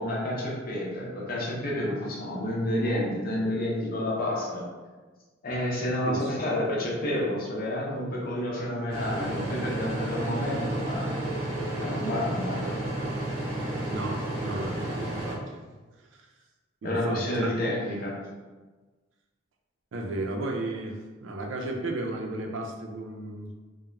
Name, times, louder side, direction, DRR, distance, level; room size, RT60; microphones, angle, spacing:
voice 1, 0.0-4.6 5.4-11.1 11.8-12.6 16.8-18.2, left 1 dB, 50° left, -4 dB, 0.7 m, -29 dB
sound 1, 8.9-15.3, right 1 dB, 25° right, 0.8 m, -31 dB
voice 2, 13.9-15.6 16.1-16.3 16.8-17.5 19.9-23.5, right 2 dB, 70° right, 2 dB, 0.4 m, -34 dB
2.4 x 2.0 x 3.1 m, 1.3 s
head